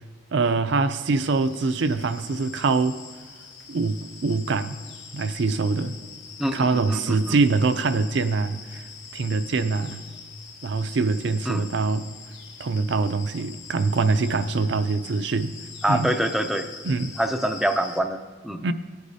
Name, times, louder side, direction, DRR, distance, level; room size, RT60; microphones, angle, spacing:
voice 1, 0.3-3.0 3.7-4.8 5.1-6.0 6.5-8.8 9.1-10.0 10.6-12.1 12.6-15.6 15.9-16.1 16.8-17.2 18.6-18.7, right 4 dB, 65° right, 0.4 m, -24 dB
sound 1, 1.0-18.0, left 6 dB, 75° left, 1.1 m, -43 dB
voice 2, 6.4-7.4 11.5-11.6 15.8-16.7 17.2-18.6, right 1 dB, ahead, 0.4 m, -25 dB
18.5 x 8.1 x 2.7 m
head